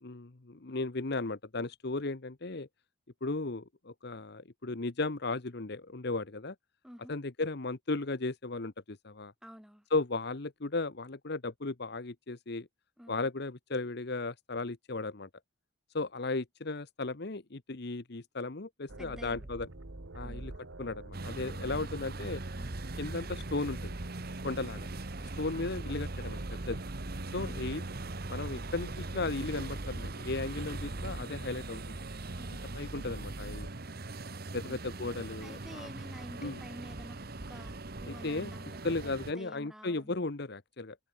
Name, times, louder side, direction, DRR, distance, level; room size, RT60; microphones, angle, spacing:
voice 1, 0.0-2.7 3.2-6.5 7.1-9.3 9.9-12.7 13.1-15.3 15.9-19.7 20.1-20.5 20.8-22.4 23.0-23.9 24.4-24.9 25.2-26.4 26.7-26.8 27.3-27.8 28.3-31.8 32.7-33.7 34.5-35.9 36.4-36.6 38.0-38.5 38.8-41.0, left 3 dB, 55° left, 1.1 m, -35 dB
voice 2, 6.8-7.1 9.4-9.8 13.0-13.2 19.0-19.5 20.2-20.4 21.6-21.9 22.6-22.7 27.3-27.7 32.4-32.7 34.6-34.8 35.4-37.2 37.5-40.1, equal, 5° right, 6.5 m, -50 dB
sound 1, 18.9-33.7, right 1 dB, 80° right, 1.6 m, -44 dB
sound 2, 21.1-39.3, right 2 dB, 50° right, 1.3 m, -41 dB
head